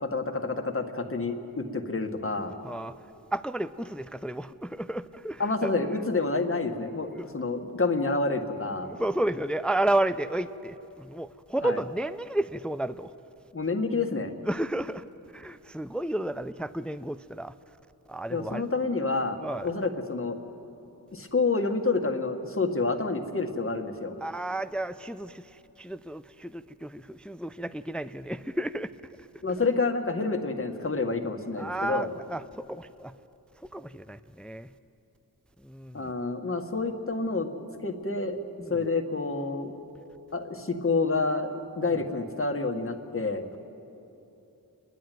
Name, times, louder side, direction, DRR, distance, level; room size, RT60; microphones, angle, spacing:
voice 1, 0.0-2.5 5.4-8.9 11.6-11.8 13.5-14.3 18.3-20.4 21.1-24.1 29.4-32.1 35.9-37.5 37.8-38.4 38.7-39.7 40.3-43.5, left 3 dB, 35° left, 1.7 m, -28 dB
voice 2, 2.6-3.0 3.3-5.7 7.1-7.3 8.9-13.1 14.5-17.5 18.1-18.6 19.4-19.7 24.2-28.9 29.2-29.3 31.6-33.1 33.6-34.7 35.6-36.1 38.6-38.9, right 1 dB, 5° left, 0.4 m, -32 dB
28.0 x 11.0 x 9.2 m
cardioid pair, 60°, 36 cm